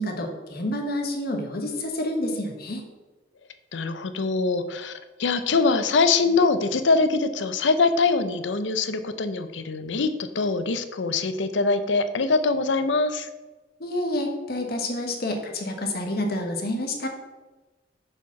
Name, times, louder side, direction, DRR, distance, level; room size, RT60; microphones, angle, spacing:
voice 1, 0.0-2.8 13.8-17.1, left 1 dB, 55° left, 3 dB, 1.1 m, -28 dB
voice 2, 3.7-13.3, left 3 dB, 80° left, 10 dB, 0.6 m, -23 dB
6.7 x 4.7 x 5.8 m, 1.2 s
head